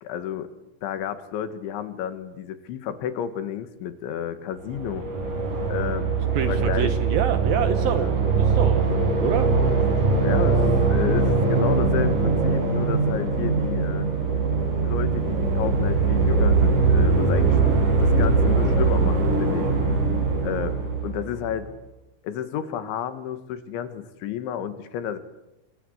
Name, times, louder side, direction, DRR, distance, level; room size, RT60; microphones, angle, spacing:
voice 1, 0.0-0.5 0.8-5.1 5.7-6.1 6.5-6.9 7.6-8.1 10.2-14.1 14.8-17.7 18.0-20.0 20.4-20.8 21.0-21.7 22.2-25.2, left 9 dB, 80° left, 11 dB, 4.2 m, -31 dB
sound 1, 4.6-21.6, right 4 dB, 45° right, 6.4 m, -21 dB
voice 2, 6.3-8.1 8.4-8.9 9.2-9.5, right 9 dB, 70° right, 11 dB, 2.4 m, -26 dB
28.0 x 24.0 x 8.2 m, 0.92 s
omnidirectional pair, 5.4 m